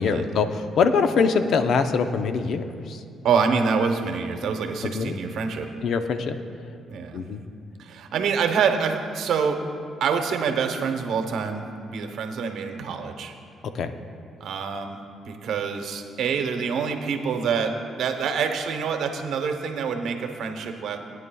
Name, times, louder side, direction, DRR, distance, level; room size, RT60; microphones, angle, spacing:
voice 1, 0.0-3.0 4.8-5.2 5.8-6.4 7.1-7.4 13.7-13.9, left 5 dB, 65° left, 8 dB, 0.6 m, -23 dB
voice 2, 3.2-5.7 6.9-7.2 7.8-9.6 10.0-13.3 14.4-15.0 15.3-21.0, right 6 dB, 75° right, 6 dB, 0.9 m, -26 dB
18.5 x 9.3 x 2.3 m, 2.4 s
cardioid pair, 90°, 0 cm